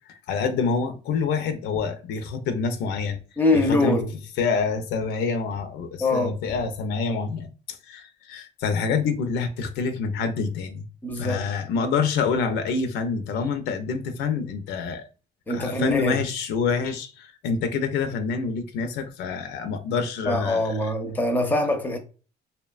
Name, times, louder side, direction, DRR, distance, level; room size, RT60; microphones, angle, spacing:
voice 1, 0.0-3.2 3.5-4.0 4.4-10.9 11.2-15.1 15.5-20.9, left 5 dB, 80° left, 0.5 m, -27 dB
voice 2, 3.4-4.1 6.0-6.3 11.0-11.4 15.5-16.2 20.3-22.0, left 2 dB, 10° left, 0.5 m, -23 dB
2.8 x 2.1 x 2.3 m
cardioid pair, 110°, 17 cm